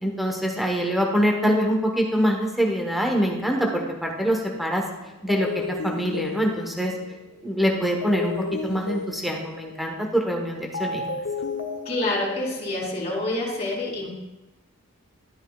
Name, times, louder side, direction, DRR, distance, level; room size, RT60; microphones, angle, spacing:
voice 1, 0.0-4.8 5.2-6.9 7.4-8.3 8.6-11.0, equal, ahead, 0 dB, 1.0 m, -24 dB
sound 1, 5.3-13.0, left 3 dB, 80° left, 0.8 m, -34 dB
voice 2, 11.8-14.1, left 2 dB, 30° left, -4 dB, 2.8 m, -27 dB
12.5 x 8.9 x 2.3 m, 0.99 s
head